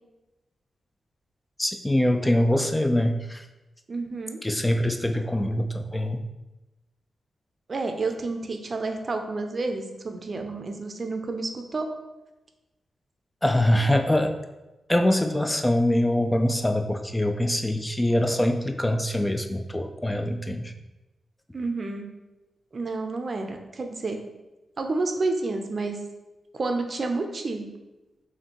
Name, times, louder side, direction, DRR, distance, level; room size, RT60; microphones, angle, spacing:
voice 1, 1.6-3.5 4.4-6.3 13.4-14.4 14.9-20.7, left 1 dB, 15° left, 6 dB, 0.3 m, -24 dB
voice 2, 3.9-4.4 7.7-11.9 21.5-22.1 22.7-24.2 24.8-26.0 26.5-27.7, right 3 dB, 50° right, 5 dB, 0.5 m, -30 dB
4.2 x 2.7 x 3.0 m, 1.0 s
cardioid pair, 55°, 0 cm